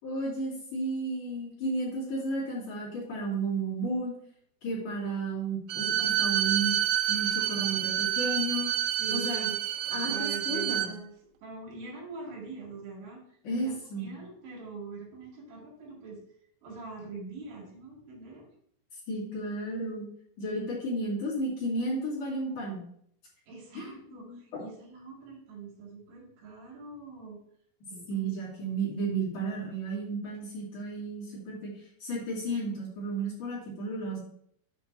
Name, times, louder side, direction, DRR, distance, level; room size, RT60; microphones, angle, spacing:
voice 1, 0.0-4.1 4.6-6.7 7.1-8.7 9.1-9.4 9.9-10.9 13.4-14.1 19.1-20.1 20.4-22.8 23.7-24.6 28.1-31.7 32.0-34.2, right 2 dB, 45° left, -9 dB, 3.4 m, -33 dB
Bowed string instrument, 5.7-10.9, right 12 dB, 90° right, 2.4 m, -28 dB
voice 2, 9.0-9.6 10.1-11.1 11.4-16.2 16.6-18.5 23.5-27.4 27.9-28.3, right 4 dB, 70° right, -4 dB, 4.4 m, -43 dB
8.5 x 4.3 x 4.2 m, 0.67 s
omnidirectional pair, 5.7 m